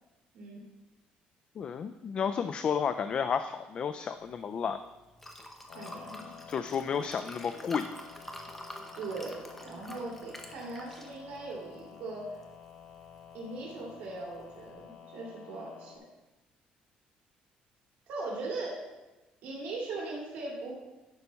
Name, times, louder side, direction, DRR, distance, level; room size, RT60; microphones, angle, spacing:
voice 1, 1.6-4.8 6.5-7.9, left 7 dB, 35° left, 10 dB, 0.3 m, -32 dB
Liquid, 4.2-14.7, left 1 dB, 10° left, 1.0 m, -49 dB
sound 1, 5.7-16.0, left 8 dB, 75° left, 1.0 m, -51 dB
voice 2, 5.7-6.3 8.9-12.4 13.3-16.0 18.1-18.9 19.4-20.7, right 2 dB, 70° right, -3 dB, 2.5 m, -39 dB
11.5 x 4.1 x 5.6 m, 1.1 s
cardioid pair, 140°, 3 cm